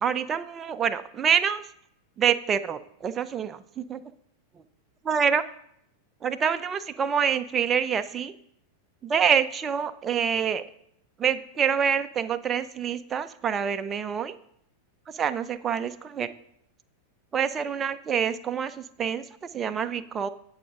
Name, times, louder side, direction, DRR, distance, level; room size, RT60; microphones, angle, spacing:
voice 1, 0.0-1.6 2.2-4.0 5.0-5.4 6.2-8.3 9.0-10.6 11.2-14.4 15.1-16.3 17.3-20.3, right 7 dB, 25° right, 11 dB, 0.5 m, -26 dB
17.0 x 6.4 x 3.7 m, 0.73 s
figure-of-eight pair, 90°, 0 cm